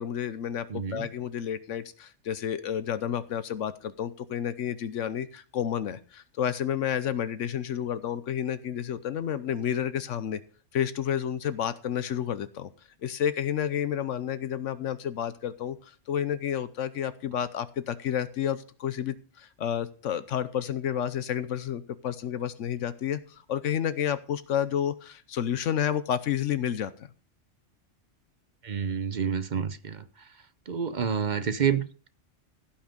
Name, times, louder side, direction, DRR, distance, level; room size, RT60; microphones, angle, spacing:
voice 1, 0.0-10.4 10.7-12.7 13.0-27.1, left 9 dB, 80° left, 1.1 m, -30 dB
voice 2, 0.7-1.1 28.6-30.0 30.7-32.1, right 7 dB, 45° right, 0.8 m, -29 dB
16.0 x 6.0 x 5.2 m
omnidirectional pair, 1.3 m